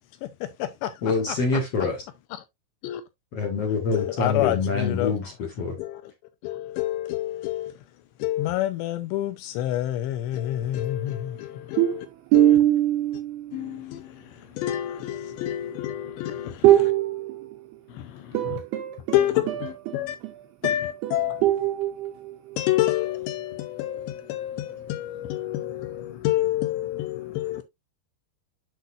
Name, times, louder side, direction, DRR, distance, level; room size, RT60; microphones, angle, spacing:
voice 1, 0.2-1.0 1.3-1.6 2.8-3.0 3.9-5.1 5.8-6.1 6.4-7.7 8.2-12.1 12.3-12.6 13.5-16.6 17.9-18.6 19.1-20.2 20.6-21.4 22.6-27.6, left 13 dB, 85° left, 2.7 m, -28 dB
voice 2, 1.0-2.0 3.3-5.3 5.6-5.8, left 4 dB, 55° left, 1.9 m, -25 dB
voice 3, 11.8-13.8 16.6-17.8 18.3-22.6, right 14 dB, 80° right, 2.4 m, -23 dB
8.1 x 6.1 x 2.5 m
omnidirectional pair, 5.4 m